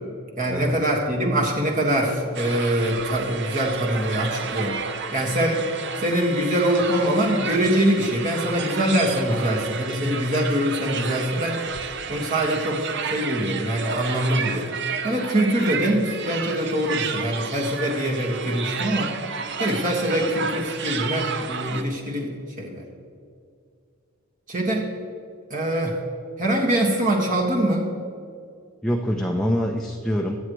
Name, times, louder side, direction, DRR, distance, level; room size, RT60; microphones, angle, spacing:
voice 1, 0.4-4.8 5.1-5.7 6.0-11.6 12.1-14.7 15.0-19.1 19.6-22.3 22.6-22.8 24.5-24.9 25.5-26.0 26.4-27.9, right 1 dB, 40° right, -1 dB, 1.7 m, -23 dB
sound 1, 2.3-21.8, right 6 dB, 55° right, 0.8 m, -31 dB
voice 2, 28.8-30.4, equal, 5° left, 0 dB, 0.6 m, -25 dB
24.0 x 8.1 x 3.2 m, 2.3 s
head